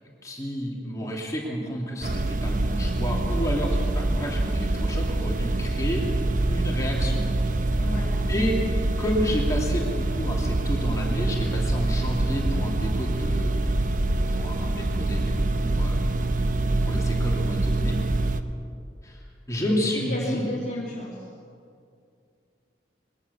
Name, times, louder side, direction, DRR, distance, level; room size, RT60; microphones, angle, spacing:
voice 1, 0.2-6.1 6.4-7.3 8.3-8.6 9.0-13.7 14.3-16.1 16.6-18.0 19.0-20.5, equal, 20° left, -2 dB, 3.0 m, -31 dB
sound 1, 2.0-18.4, right 2 dB, 45° right, 0.9 m, -25 dB
voice 2, 7.8-8.2 19.5-21.3, left 1 dB, 40° left, -4 dB, 2.5 m, -33 dB
22.0 x 18.0 x 7.0 m, 2.4 s
head